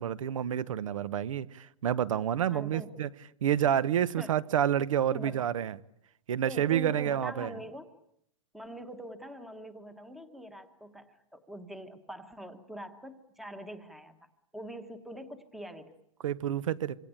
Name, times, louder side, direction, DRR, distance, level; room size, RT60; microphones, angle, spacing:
voice 1, 0.0-3.1 3.4-5.8 6.3-7.5 16.2-17.0, right 10 dB, 75° right, 18 dB, 1.1 m, -29 dB
voice 2, 2.5-3.0 4.2-4.3 5.1-5.5 6.4-7.9 8.5-14.2 14.5-15.9, equal, ahead, 10 dB, 1.1 m, -43 dB
26.5 x 24.0 x 8.7 m, 0.73 s
supercardioid pair, 175°, 17 cm